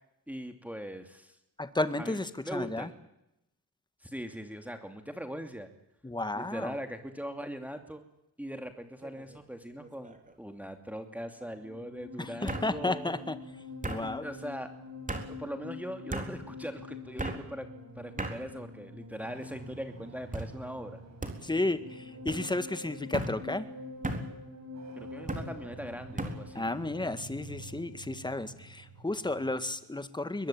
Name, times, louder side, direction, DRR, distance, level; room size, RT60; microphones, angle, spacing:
voice 1, 0.3-1.4 2.0-2.2 2.4-2.9 4.0-5.7 6.3-8.0 8.4-13.2 14.0-14.7 15.3-17.7 18.0-21.0 24.9-26.6, equal, 5° right, 6 dB, 2.6 m, -40 dB
voice 2, 1.6-2.9 6.0-6.8 12.2-13.4 13.8-14.3 21.4-23.7 26.5-30.5, left 2 dB, 10° left, 12 dB, 1.8 m, -33 dB
sound 1, 9.0-9.4 9.8-10.3 11.4-11.5 12.5-12.7 13.8-14.0 15.1-15.3 16.1-16.3 17.2-17.4 18.2-18.4 19.1-19.5 20.3-20.5 21.2-21.4 22.3-22.4 23.1-23.3 24.0-24.3 25.3-25.5 26.2-26.4, right 2 dB, 20° right, 4.0 m, -35 dB
sound 2, 11.3-29.8, left 2 dB, 45° right, 6.5 m, -46 dB
22.0 x 22.0 x 8.8 m, 0.86 s
cardioid pair, 90°, 38 cm